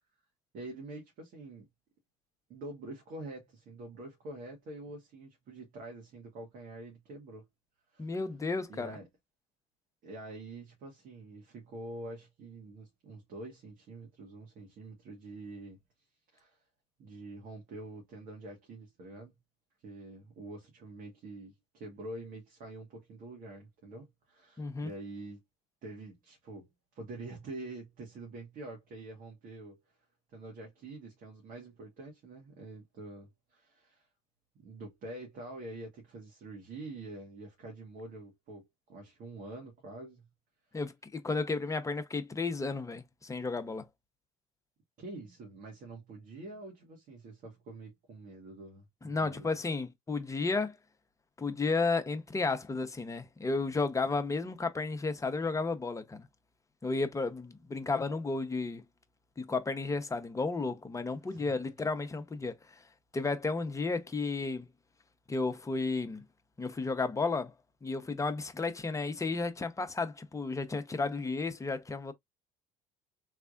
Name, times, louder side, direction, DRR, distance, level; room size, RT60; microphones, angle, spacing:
voice 1, 0.5-1.7 2.5-7.5 7.9-8.1 8.7-9.1 10.0-15.8 16.3-16.6 17.0-19.4 19.8-25.4 25.8-26.7 26.9-29.8 30.3-34.1 34.6-40.3 45.0-49.6 61.2-61.6, right 2 dB, 55° right, 1.9 m, -46 dB
voice 2, 8.0-9.0 24.6-24.9 40.7-43.9 49.0-50.8 51.4-56.3 56.8-58.8 59.4-62.8 63.1-64.7 65.3-66.2 66.6-67.5 67.8-72.1, left 3 dB, 20° left, 0.9 m, -33 dB
3.3 x 3.3 x 2.5 m
hypercardioid pair, 65°, 17 cm